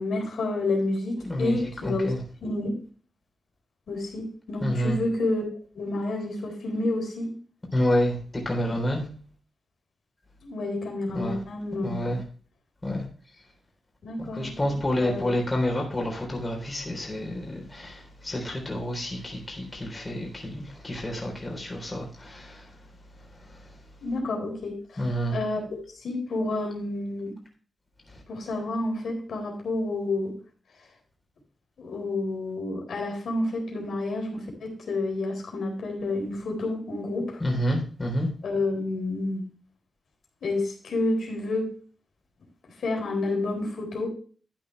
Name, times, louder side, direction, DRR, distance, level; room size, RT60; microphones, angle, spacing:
voice 1, 0.0-2.1 2.4-2.8 3.9-5.4 5.7-7.3 10.4-12.1 14.0-15.2 24.0-24.8 25.3-25.6 26.0-27.3 28.3-30.3 31.8-37.4 38.4-39.4 40.4-41.7 42.8-44.1, left 2 dB, 80° left, 4.1 m, -29 dB
voice 2, 1.2-2.2 4.6-5.0 7.7-9.1 11.1-11.4 11.8-12.2 12.8-13.1 14.2-23.9 25.0-25.4 28.1-28.2 37.4-38.3, equal, 20° left, 3.7 m, -29 dB
12.0 x 8.5 x 3.3 m
wide cardioid pair, 125°, 0 cm